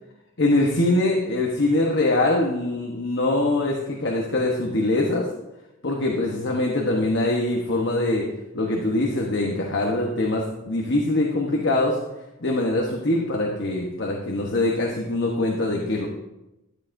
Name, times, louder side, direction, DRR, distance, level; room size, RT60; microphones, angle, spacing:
voice 1, 0.4-5.2 5.8-8.2 8.5-12.0 12.4-16.1, left 2 dB, 60° left, 0 dB, 1.1 m, -23 dB
13.5 x 9.9 x 2.7 m, 0.94 s
head